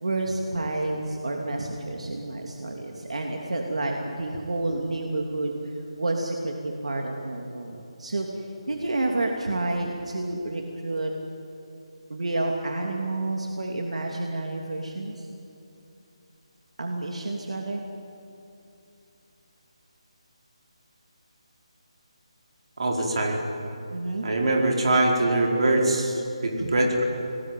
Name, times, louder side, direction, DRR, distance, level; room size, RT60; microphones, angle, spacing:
voice 1, 0.0-5.5 6.0-11.1 12.1-15.3 16.8-17.8 23.9-24.3 26.6-26.8, right 2 dB, 85° right, 1 dB, 2.9 m, -29 dB
voice 2, 22.8-23.4 24.2-27.0, right 2 dB, 60° right, 0 dB, 4.9 m, -23 dB
27.5 x 20.0 x 9.2 m, 2.7 s
hypercardioid pair, 170°, 3 cm